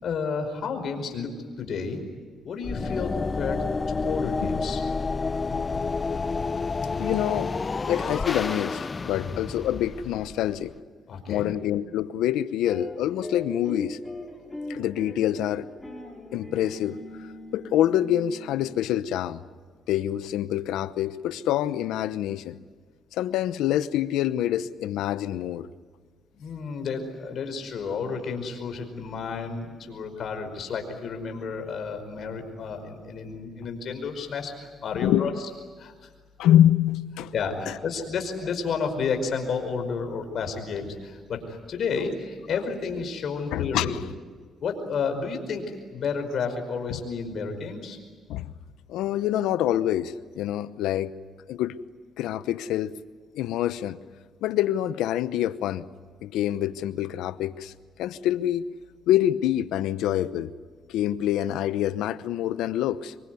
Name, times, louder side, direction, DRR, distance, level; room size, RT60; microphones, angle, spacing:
voice 1, 0.0-1.3 1.6-2.0 2.4-4.8 9.1-9.4 11.1-11.5 26.3-36.1 37.3-44.0 44.6-45.6 45.9-48.0, left 5 dB, 60° left, 5.2 m, -31 dB
sound 1, 2.6-10.8, left 4 dB, 30° left, 0.8 m, -29 dB
voice 2, 7.0-7.5 7.9-10.7 11.3-14.0 14.7-15.7 16.3-17.0 17.5-19.4 19.9-22.6 23.1-25.7 35.0-35.3 36.4-37.3 37.7-37.8 43.5-44.0 48.3-48.5 48.9-51.1 51.5-51.7 52.2-52.9 53.3-54.0 54.4-55.8 56.2-57.7 58.0-58.7 59.1-60.5 60.9-63.1, left 12 dB, 90° left, 0.9 m, -26 dB
sound 2, 12.6-19.2, left 1 dB, 10° left, 5.3 m, -40 dB
26.0 x 23.5 x 9.5 m
cardioid pair, 90°, 0 cm